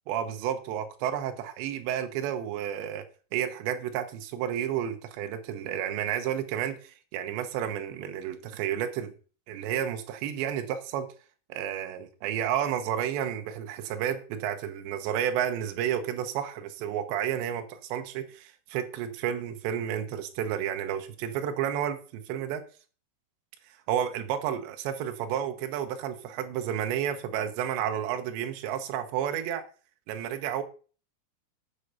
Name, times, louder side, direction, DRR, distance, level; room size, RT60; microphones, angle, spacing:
voice 1, 0.1-3.1 3.3-9.1 9.5-11.1 11.5-22.6 23.7-29.6 30.1-30.6, right 10 dB, 75° right, 3.1 m, -31 dB
9.9 x 7.7 x 5.5 m
omnidirectional pair, 5.8 m